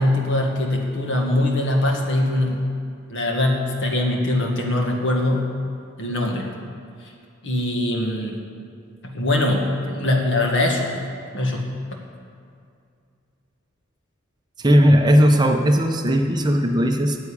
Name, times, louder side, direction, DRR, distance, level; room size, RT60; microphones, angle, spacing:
voice 1, 0.0-2.6 3.1-5.5 6.0-6.5 7.4-8.4 9.0-10.9 11.3-12.0, left 1 dB, 60° left, 1 dB, 1.7 m, -22 dB
voice 2, 14.6-17.2, equal, 20° right, 4 dB, 0.7 m, -17 dB
9.6 x 8.2 x 8.6 m, 2.4 s
head